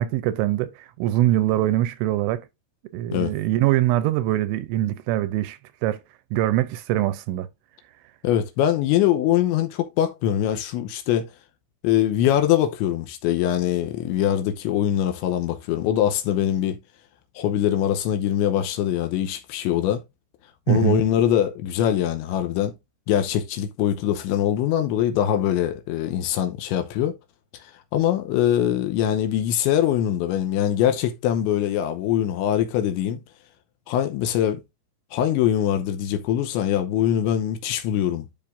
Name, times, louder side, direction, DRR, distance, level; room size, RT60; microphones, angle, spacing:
voice 1, 0.0-2.4 2.9-6.0 6.3-7.5 20.7-21.0, right 14 dB, 80° right, 2.8 m, -23 dB
voice 2, 8.2-11.3 11.8-16.8 17.4-20.0 20.7-22.7 23.1-27.2 27.5-33.2 33.9-34.6 35.1-38.3, left 11 dB, 80° left, 2.9 m, -23 dB
12.0 x 5.4 x 2.5 m
omnidirectional pair, 5.8 m